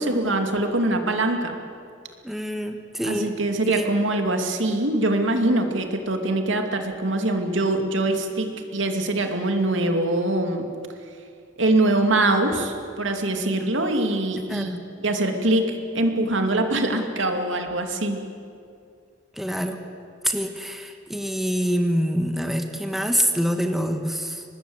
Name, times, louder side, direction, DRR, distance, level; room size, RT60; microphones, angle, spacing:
voice 1, 0.0-1.6 3.0-10.7 11.6-18.2, right 2 dB, 70° right, 5 dB, 2.4 m, -23 dB
voice 2, 2.2-3.3 3.7-3.9 14.5-14.8 19.3-19.8 20.2-24.4, equal, ahead, 5 dB, 1.4 m, -26 dB
24.5 x 19.5 x 7.9 m, 2.4 s
head